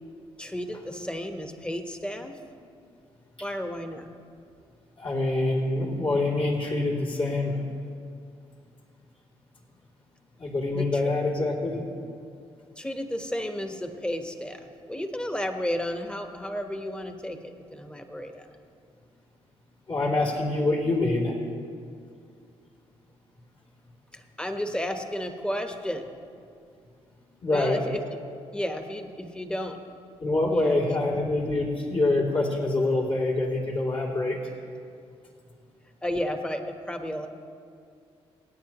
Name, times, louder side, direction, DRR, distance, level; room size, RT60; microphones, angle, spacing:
voice 1, 0.4-2.3 3.4-4.0 10.7-10.9 12.8-18.5 24.1-26.0 27.5-28.0 28.5-29.8 30.5-30.8 36.0-37.3, equal, 10° left, 5 dB, 1.2 m, -32 dB
voice 2, 5.0-7.6 10.4-11.8 19.9-21.3 27.4-27.8 30.2-34.4, left 2 dB, 50° left, -5 dB, 3.1 m, -25 dB
26.5 x 8.9 x 3.1 m, 2.3 s
supercardioid pair, 65°, 11 cm